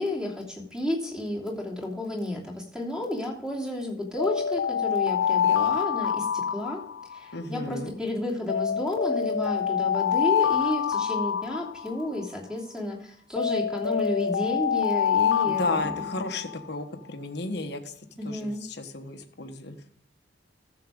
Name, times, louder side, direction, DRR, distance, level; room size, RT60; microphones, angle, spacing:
voice 1, 0.0-6.8 7.1-16.1 18.2-18.6, left 1 dB, 5° right, -1 dB, 3.0 m, -31 dB
sound 1, 4.2-7.4 8.5-12.2 13.4-16.6, left 8 dB, 85° left, 0.4 m, -26 dB
voice 2, 7.3-7.9 15.4-19.8, left 2 dB, 65° left, 6 dB, 1.3 m, -34 dB
14.0 x 7.5 x 3.7 m, 0.64 s
head